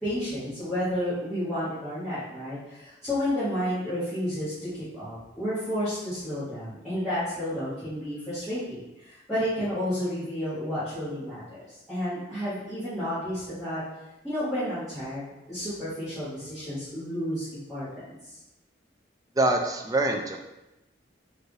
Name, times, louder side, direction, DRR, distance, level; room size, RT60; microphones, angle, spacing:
voice 1, 0.0-13.8 14.2-18.4, equal, ahead, -16 dB, 1.5 m, -31 dB
voice 2, 19.4-20.4, right 2 dB, 20° right, 3 dB, 0.3 m, -24 dB
4.5 x 2.5 x 3.1 m, 0.96 s
head